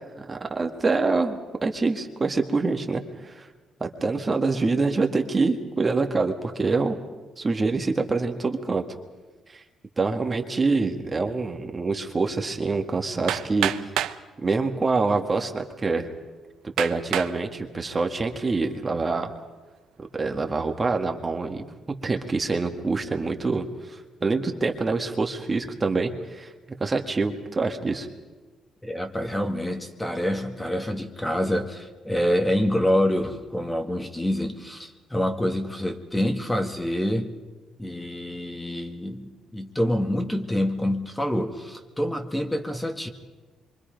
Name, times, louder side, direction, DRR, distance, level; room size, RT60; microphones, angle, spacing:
voice 1, 0.2-3.5 3.8-7.0 7.4-8.8 9.5-9.6 10.0-13.9 14.4-16.1 16.8-19.3 20.1-21.6 22.0-26.5 26.8-28.1, right 3 dB, 30° right, 4 dB, 1.8 m, -25 dB
Hammer, 13.3-14.2 15.1-15.2 15.8-15.9 16.8-17.4 18.0-18.4, right 11 dB, 85° right, 0.8 m, -28 dB
voice 2, 28.8-37.3 37.8-43.1, equal, 10° left, 5 dB, 1.9 m, -26 dB
26.5 x 24.5 x 5.3 m, 1.3 s
cardioid pair, 90°, 0 cm